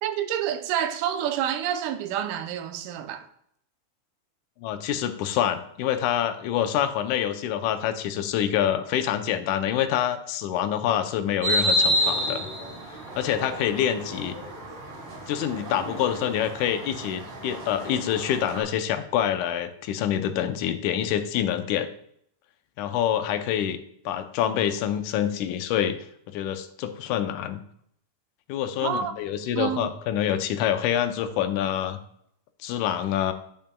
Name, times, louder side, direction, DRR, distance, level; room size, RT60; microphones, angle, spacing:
voice 1, 0.0-3.3 28.8-29.1 29.6-29.9, right 9 dB, 85° right, 2.1 m, -28 dB
voice 2, 4.6-12.5 13.2-14.4 15.3-21.9 22.8-23.8 24.1-26.0 26.3-27.6 28.5-32.0 32.6-33.3, left 10 dB, 80° left, 2.1 m, -26 dB
sound 1, 11.4-18.6, equal, 40° right, 3.7 m, -29 dB
9.0 x 8.8 x 2.2 m
omnidirectional pair, 3.6 m